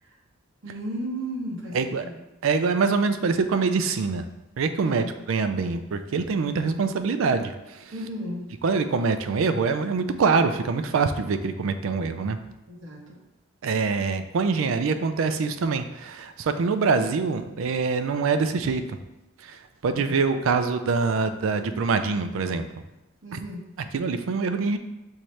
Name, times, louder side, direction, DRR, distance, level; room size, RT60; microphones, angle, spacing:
voice 1, 0.6-2.2 4.8-5.1 7.9-8.5 12.7-13.2 23.2-23.6, equal, 60° right, -3 dB, 1.0 m, -35 dB
voice 2, 1.7-2.0 2.4-4.2 4.6-7.9 8.6-12.4 13.6-19.0 19.4-22.7 23.3-23.4 23.9-24.8, right 4 dB, 80° right, 9 dB, 0.4 m, -24 dB
5.8 x 2.7 x 3.2 m, 0.97 s
head